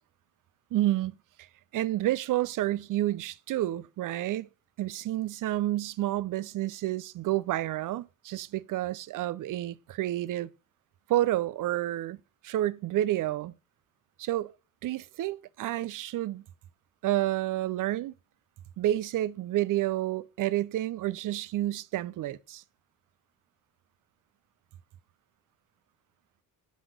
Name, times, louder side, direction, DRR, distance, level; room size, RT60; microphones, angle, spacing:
voice 1, 0.7-1.5 1.7-4.5 4.8-10.5 11.1-12.2 12.4-13.5 14.2-14.5 14.8-16.4 17.0-18.1 18.8-22.6, right 14 dB, 55° right, 0.6 m, -29 dB
6.2 x 5.3 x 6.2 m
supercardioid pair, 60°, 39 cm